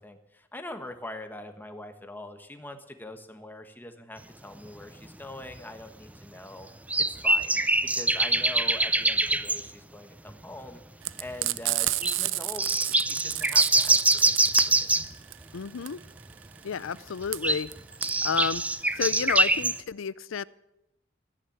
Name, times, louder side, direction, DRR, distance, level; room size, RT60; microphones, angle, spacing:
voice 1, 0.0-6.7 7.0-10.8 11.2-14.9, left 1 dB, 10° left, 6 dB, 1.4 m, -43 dB
sound 1, 4.6-4.7 5.5-5.6 6.9-9.7 10.3-10.4 10.6-10.7 11.1-11.4 12.0-12.2 12.6-15.1 17.2-19.8, right 2 dB, 5° right, 0.5 m, -24 dB
Frying (food), 11.0-19.8, right 16 dB, 70° right, 0.5 m, -31 dB
voice 2, 15.5-16.0 16.6-17.7 18.2-18.6 19.0-20.4, left 6 dB, 80° left, 19 dB, 0.5 m, -30 dB
14.5 x 10.0 x 8.7 m, 0.88 s
head